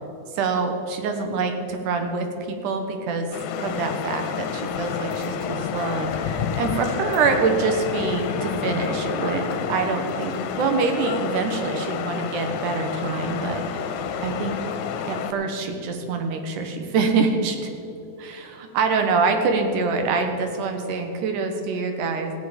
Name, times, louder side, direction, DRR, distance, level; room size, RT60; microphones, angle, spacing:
voice 1, 0.3-3.3 3.6-13.6 14.2-14.5 15.1-17.7 18.2-22.3, right 4 dB, 85° right, 5 dB, 2.7 m, -25 dB
sound 1, 3.3-15.3, left 7 dB, 75° left, 2.0 m, -29 dB
15.5 x 9.6 x 5.2 m, 2.8 s
omnidirectional pair, 3.6 m